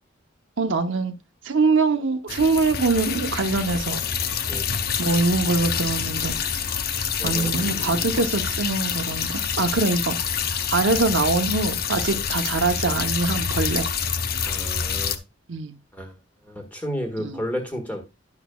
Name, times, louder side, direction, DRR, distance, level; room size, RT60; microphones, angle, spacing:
voice 1, 0.6-1.1 1.4-4.0 5.0-6.4 7.2-10.2 10.5-13.9 15.5-15.8 17.2-17.4, right 3 dB, 70° right, 0.8 m, -23 dB
sound 1, 2.3-15.2, left 7 dB, 50° left, 0.6 m, -27 dB
voice 2, 7.2-7.6 12.1-12.3 14.4-15.2 15.9-16.2 16.4-18.0, equal, 10° left, 1.5 m, -32 dB
10.5 x 6.1 x 2.3 m
head